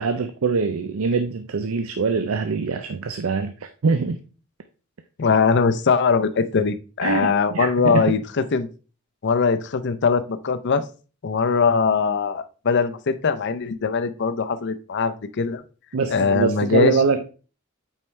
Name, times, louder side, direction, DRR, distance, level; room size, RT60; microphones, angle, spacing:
voice 1, 0.0-4.2 7.0-8.1 15.9-17.3, right 4 dB, 85° right, 0.5 m, -24 dB
voice 2, 5.2-8.7 9.2-10.8 11.2-15.6 16.1-17.0, left 5 dB, 55° left, 0.5 m, -21 dB
8.6 x 4.5 x 3.2 m
head